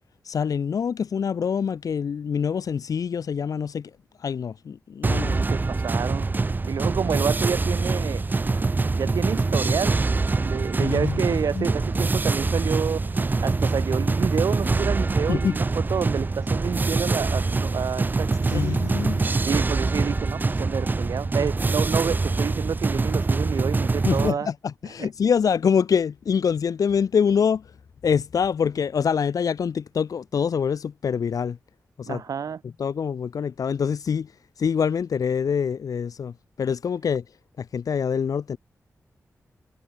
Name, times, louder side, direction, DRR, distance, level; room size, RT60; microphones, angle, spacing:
voice 1, 0.3-3.9 4.2-5.4 10.8-11.7 15.3-15.6 18.5-19.5 24.0-27.6 28.0-31.6 32.0-32.2 32.8-34.3 34.6-37.2 37.6-38.6, left 7 dB, 85° left, 3.6 m, -25 dB
sound 1, 5.0-24.3, right 3 dB, 30° right, 3.1 m, -24 dB
voice 2, 5.0-6.3 6.7-8.2 9.0-10.0 10.4-13.0 13.4-18.8 19.4-24.5 25.0-25.1 32.1-32.6, right 7 dB, 85° right, 2.7 m, -29 dB
wide cardioid pair, 140°, 6 cm